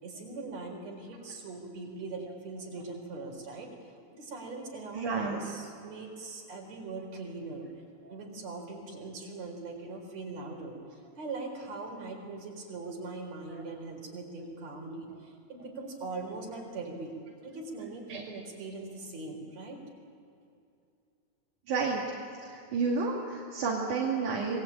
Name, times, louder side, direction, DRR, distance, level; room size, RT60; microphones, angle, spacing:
voice 1, 0.0-3.7 4.1-7.7 8.1-10.8 11.2-17.1 17.4-19.8, right 3 dB, 60° right, 1 dB, 5.5 m, -41 dB
voice 2, 4.9-5.4 8.0-8.1 13.5-13.6 18.1-18.2 21.7-22.0 22.4-24.6, right 4 dB, 75° right, -3 dB, 3.8 m, -31 dB
26.5 x 20.5 x 8.8 m, 2.6 s
omnidirectional pair, 3.5 m